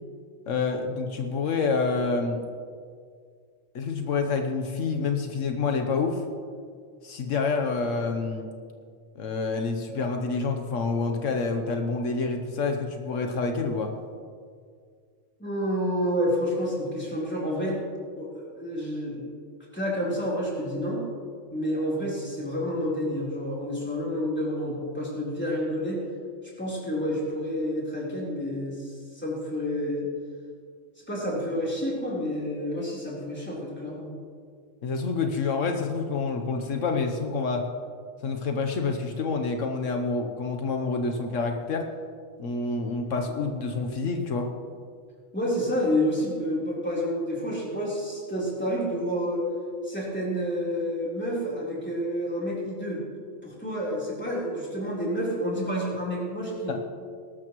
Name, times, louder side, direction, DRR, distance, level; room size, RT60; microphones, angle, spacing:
voice 1, 0.5-2.4 3.7-6.2 7.0-8.5 9.2-13.9 34.8-37.7 38.2-41.9 42.4-44.5 56.7-56.8, left 4 dB, 80° left, 4 dB, 1.3 m, -28 dB
voice 2, 15.4-17.8 18.2-19.3 19.7-21.0 21.5-26.0 26.6-30.1 31.1-34.1 45.3-49.5 49.8-53.0 53.4-56.8, equal, 10° left, -6 dB, 3.8 m, -29 dB
19.5 x 12.5 x 3.1 m, 2.1 s
omnidirectional pair, 1.3 m